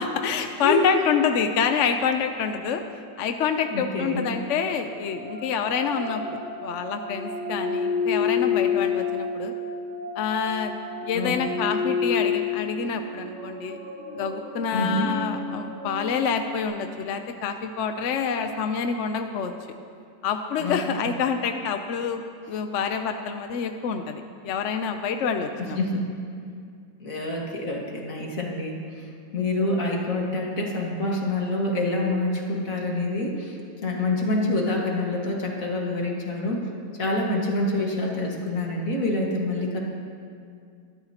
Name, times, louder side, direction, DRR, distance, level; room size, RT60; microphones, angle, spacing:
voice 1, 0.0-2.8 3.2-9.5 10.2-10.8 11.0-13.8 14.1-19.5 20.2-22.2 22.5-25.8, left 6 dB, 65° left, 6 dB, 0.7 m, -27 dB
voice 2, 3.7-4.3 11.1-11.6 14.7-15.1 20.6-20.8 25.6-26.1 27.0-28.8 29.3-36.7 37.0-39.8, left 2 dB, 50° left, -1 dB, 2.2 m, -26 dB
sound 1, 4.8-16.6, left 5 dB, 65° right, 3.0 m, -30 dB
23.5 x 12.5 x 2.9 m, 2.3 s
omnidirectional pair, 1.9 m